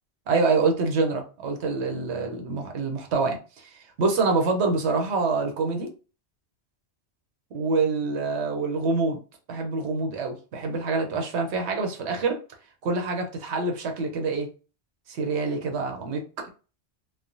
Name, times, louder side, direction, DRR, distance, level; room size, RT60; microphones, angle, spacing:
voice 1, 0.3-5.9 7.5-9.2 9.5-12.4 12.8-14.5 15.1-16.5, right 3 dB, 80° right, 3 dB, 0.9 m, -26 dB
3.1 x 2.1 x 2.5 m, 0.35 s
omnidirectional pair, 1.1 m